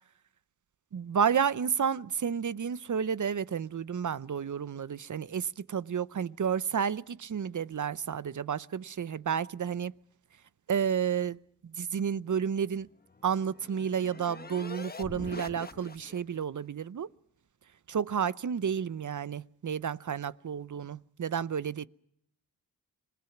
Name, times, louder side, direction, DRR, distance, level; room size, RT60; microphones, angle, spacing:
voice 1, 0.9-9.9 10.7-11.4 11.8-12.9 13.2-17.1 17.9-21.9, right 7 dB, 50° right, 0.8 m, -31 dB
sound 1, 12.8-16.4, left 3 dB, 25° left, 1.1 m, -44 dB
26.5 x 20.0 x 5.9 m
cardioid pair, 50°, 38 cm